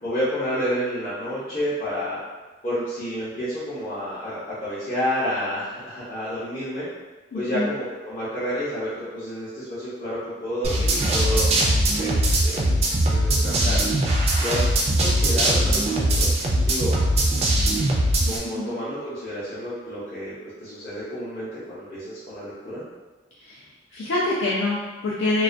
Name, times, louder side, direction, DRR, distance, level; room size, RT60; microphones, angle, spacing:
voice 1, 0.0-2.2 2.6-6.9 7.3-11.5 12.0-12.7 13.1-13.8 14.4-14.6 15.0-16.3 16.6-17.0 18.0-20.3 20.6-22.8, equal, 35° left, -13 dB, 0.6 m, -30 dB
voice 2, 7.3-7.7 18.2-18.7 23.4-23.6 23.9-25.4, left 2 dB, 80° left, -7 dB, 0.4 m, -26 dB
sound 1, 10.6-18.4, right 1 dB, 35° right, 0.3 m, -21 dB
2.3 x 2.2 x 2.5 m, 1.2 s
head